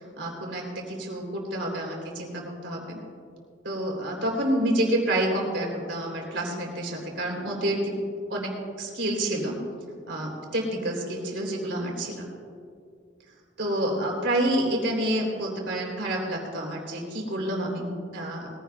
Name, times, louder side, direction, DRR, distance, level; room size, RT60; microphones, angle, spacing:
voice 1, 0.0-3.0 3.6-7.9 8.3-9.6 10.1-12.1 13.6-18.5, right 1 dB, 65° right, -1 dB, 3.3 m, -28 dB
21.5 x 16.0 x 2.3 m, 2.3 s
head